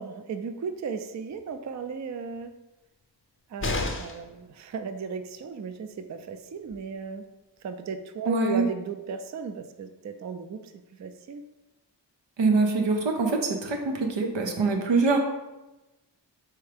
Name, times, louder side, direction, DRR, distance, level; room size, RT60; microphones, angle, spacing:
voice 1, 0.0-2.5 3.5-7.2 7.6-11.4, right 5 dB, 45° right, 9 dB, 0.4 m, -35 dB
sound 1, 3.6-4.3 6.3-6.4 6.7-6.8, left 3 dB, 30° left, 0.5 m, -30 dB
voice 2, 8.3-8.6 12.4-15.2, right 3 dB, 90° right, 3 dB, 0.7 m, -24 dB
4.5 x 3.5 x 3.3 m, 1.0 s
cardioid pair, 50°, 43 cm